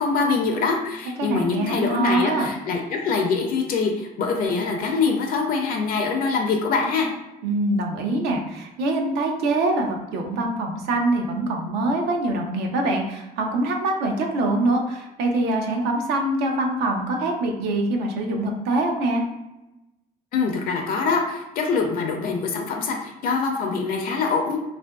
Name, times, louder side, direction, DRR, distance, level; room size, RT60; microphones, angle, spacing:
voice 1, 0.0-7.1 20.3-24.6, left 4 dB, 60° left, 2 dB, 0.4 m, -24 dB
voice 2, 1.2-2.5 7.4-19.2, right 2 dB, 85° right, 2 dB, 0.5 m, -24 dB
2.7 x 2.5 x 2.2 m, 0.97 s
cardioid pair, 110°, 17 cm